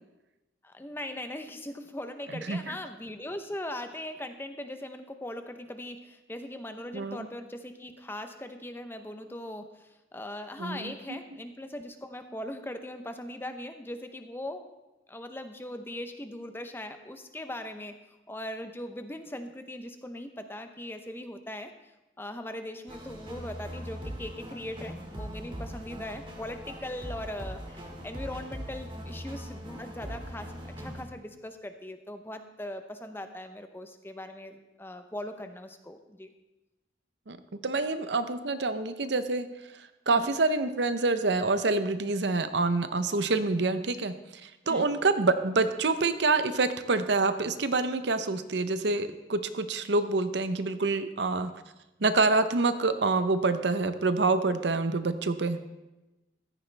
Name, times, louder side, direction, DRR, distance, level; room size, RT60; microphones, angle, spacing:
voice 1, 0.6-14.7 15.1-18.0 18.3-21.7 22.2-36.3 40.2-40.3 44.6-44.9, left 1 dB, 10° left, 7 dB, 0.8 m, -40 dB
voice 2, 2.3-2.7 6.9-7.2 10.6-11.2 37.3-37.4 37.6-39.5 40.1-44.1 44.4-51.5 52.0-55.6, right 3 dB, 70° right, 10 dB, 0.8 m, -27 dB
sound 1, 22.9-31.0, equal, 30° right, 2.1 m, -40 dB
15.0 x 13.5 x 3.4 m, 1.0 s
head